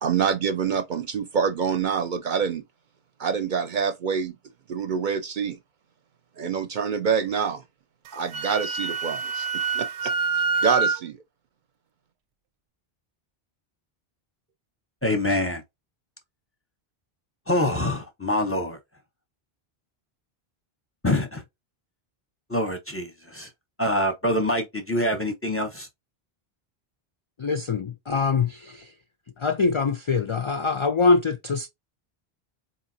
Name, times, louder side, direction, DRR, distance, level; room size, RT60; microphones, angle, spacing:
voice 1, 0.0-2.6 3.2-4.4 4.7-5.6 6.4-7.6 8.1-10.1 10.6-11.2, right 6 dB, 60° right, 0.6 m, -26 dB
Wind instrument woodwind instrument, 8.1-11.0, right 5 dB, 90° right, 0.8 m, -26 dB
voice 2, 15.0-15.6 17.5-18.8 21.0-21.4 22.5-23.5 23.8-25.9, left 1 dB, 15° left, 0.6 m, -25 dB
voice 3, 27.4-28.6 29.4-31.7, left 4 dB, 50° left, 0.3 m, -23 dB
4.2 x 2.7 x 2.7 m
omnidirectional pair, 1.0 m